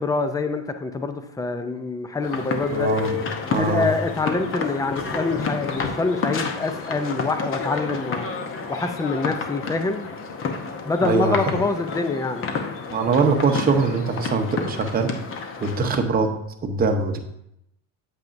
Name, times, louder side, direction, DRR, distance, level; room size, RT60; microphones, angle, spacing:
voice 1, 0.0-2.9 3.6-8.3 8.7-10.1 10.9-12.5, left 3 dB, 10° left, 8 dB, 0.5 m, -25 dB
sound 1, 2.2-16.0, left 5 dB, 30° left, 0.9 m, -30 dB
voice 2, 2.7-3.2 3.5-3.9 11.0-11.4 12.9-15.1 15.6-16.3 16.6-17.2, right 4 dB, 20° right, 4 dB, 0.9 m, -22 dB
8.8 x 7.6 x 2.6 m, 0.79 s
supercardioid pair, 130°, 42 cm